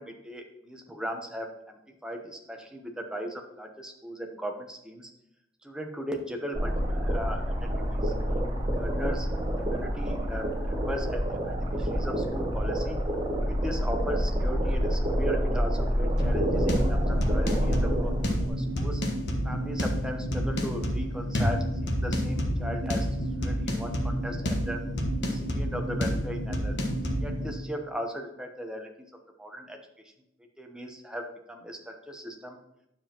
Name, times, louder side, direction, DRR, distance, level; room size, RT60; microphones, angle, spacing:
voice 1, 0.0-5.1 5.6-9.3 9.6-13.0 13.5-19.0 19.4-23.1 23.4-24.8 25.3-26.8 27.2-28.9 29.4-29.8 30.6-32.6, equal, 5° right, 3 dB, 0.9 m, -38 dB
sound 1, 6.5-18.5, equal, 25° right, 1.5 m, -27 dB
sound 2, 16.2-27.5, equal, 70° left, 1.3 m, -29 dB
9.5 x 7.1 x 2.9 m, 0.86 s
head